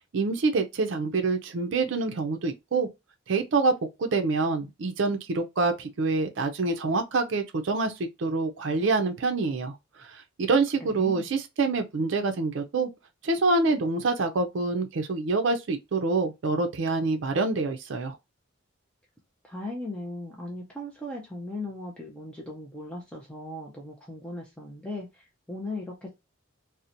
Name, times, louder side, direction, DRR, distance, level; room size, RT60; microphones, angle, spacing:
voice 1, 0.1-2.9 3.3-3.7 4.0-7.9 8.2-9.7 10.0-12.9 13.2-18.2, right 3 dB, 65° right, 0.4 m, -26 dB
voice 2, 10.8-11.3 19.4-26.1, left 2 dB, 5° left, 0.4 m, -38 dB
2.7 x 2.1 x 2.5 m
head